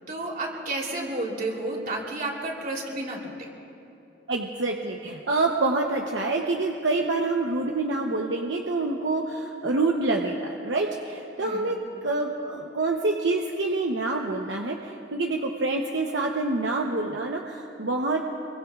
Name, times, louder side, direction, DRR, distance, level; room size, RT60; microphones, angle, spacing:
voice 1, 0.1-3.5 11.4-11.7, right 2 dB, 55° right, -1 dB, 3.3 m, -31 dB
voice 2, 4.3-18.2, right 2 dB, 80° right, 1 dB, 0.9 m, -27 dB
25.5 x 23.0 x 2.5 m, 2.8 s
head